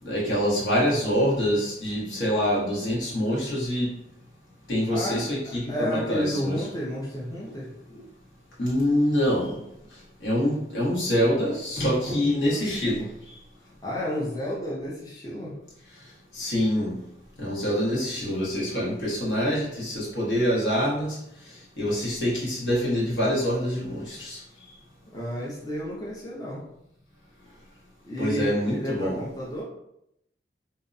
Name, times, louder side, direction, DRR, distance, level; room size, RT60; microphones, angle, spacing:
voice 1, 0.0-3.9 4.7-6.7 8.6-9.6 10.2-13.4 16.3-17.0 17.4-21.2 21.8-24.4 28.2-29.2, equal, 85° left, -6 dB, 1.1 m, -25 dB
voice 2, 4.9-7.7 13.8-15.5 25.1-26.6 28.0-29.6, equal, 20° left, -6 dB, 0.5 m, -31 dB
2.6 x 2.1 x 2.5 m, 0.79 s
head